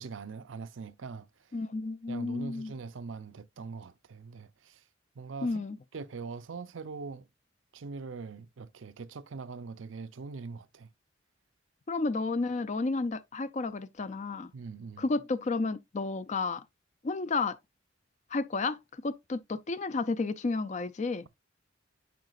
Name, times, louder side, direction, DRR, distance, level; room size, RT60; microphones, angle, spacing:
voice 1, 0.0-1.5 2.1-4.8 5.2-5.6 5.9-7.3 7.7-10.9 14.5-15.1, right 4 dB, 80° right, 0.6 m, -42 dB
voice 2, 1.5-2.7 5.4-5.8 11.9-14.5 15.0-16.6 17.0-17.6 18.3-21.3, left 3 dB, 35° left, 0.4 m, -32 dB
9.2 x 4.8 x 2.4 m
head